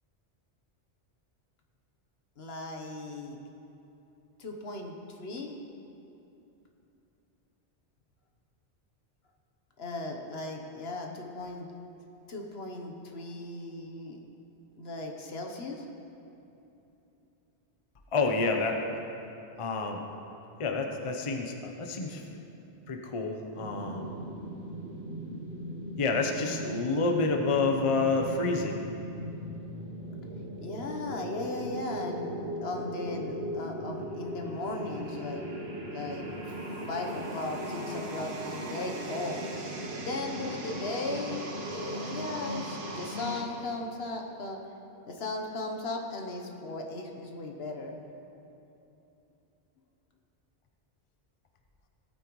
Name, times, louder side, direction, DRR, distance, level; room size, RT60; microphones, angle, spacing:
voice 1, 2.4-3.4 4.4-5.5 9.8-11.7 12.3-14.2 14.7-15.8 30.6-35.5 35.8-36.5 36.9-39.4 39.9-44.6 45.1-48.0, left 2 dB, 65° left, 2 dB, 1.2 m, -37 dB
voice 2, 18.1-18.8 19.6-20.0 20.6-22.4 22.9-24.1 26.0-28.8, left 3 dB, 35° left, 3 dB, 0.7 m, -29 dB
sound 1, 23.5-43.4, equal, 60° right, 1.4 m, -38 dB
17.0 x 9.0 x 3.1 m, 2.9 s
omnidirectional pair, 1.2 m